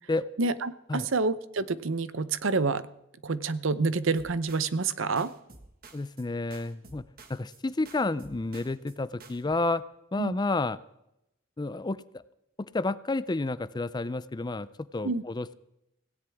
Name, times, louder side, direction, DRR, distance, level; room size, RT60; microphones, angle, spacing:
voice 1, 0.4-2.9 3.2-5.3 10.2-10.4 15.0-15.2, right 4 dB, 75° right, 15 dB, 0.8 m, -28 dB
sound 1, 4.1-4.9 5.2-6.3 6.5-7.6 7.8-8.9 9.2-9.6, right 3 dB, 45° right, 1.6 m, -52 dB
voice 2, 5.9-9.8 10.1-10.8 11.6-12.0 12.7-15.6, left 2 dB, 20° left, 16 dB, 0.4 m, -30 dB
17.5 x 16.5 x 3.6 m, 0.83 s
head